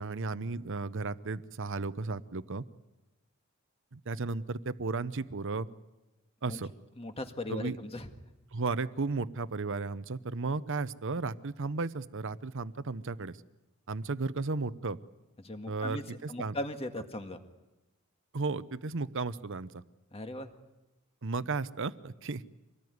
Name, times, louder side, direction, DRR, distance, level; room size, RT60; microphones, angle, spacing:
voice 1, 0.0-2.6 3.9-5.7 6.4-6.7 7.5-7.8 8.5-13.4 13.9-15.0 15.7-16.6 18.3-19.8 21.2-22.4, right 3 dB, 60° right, 14 dB, 0.9 m, -34 dB
voice 2, 7.0-8.1 15.4-17.4 20.1-20.5, left 1 dB, 30° left, 6 dB, 1.8 m, -38 dB
25.5 x 19.0 x 9.6 m, 1.1 s
head